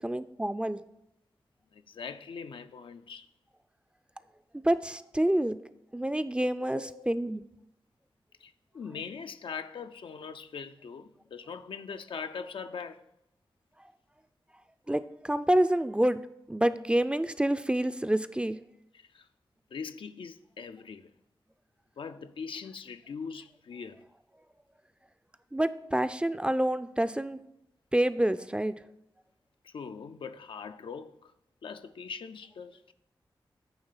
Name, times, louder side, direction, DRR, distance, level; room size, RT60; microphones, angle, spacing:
voice 1, 0.0-0.8 4.6-5.6 5.9-7.4 14.9-16.2 16.5-18.6 25.5-27.4 27.9-28.7, right 1 dB, 10° right, 0.4 m, -27 dB
voice 2, 1.7-3.3 6.7-7.1 8.4-13.0 18.9-19.3 19.7-21.1 22.0-24.0 29.6-31.3 31.6-32.8, left 6 dB, 70° left, 0.4 m, -41 dB
8.9 x 3.3 x 5.6 m
cardioid pair, 45°, 9 cm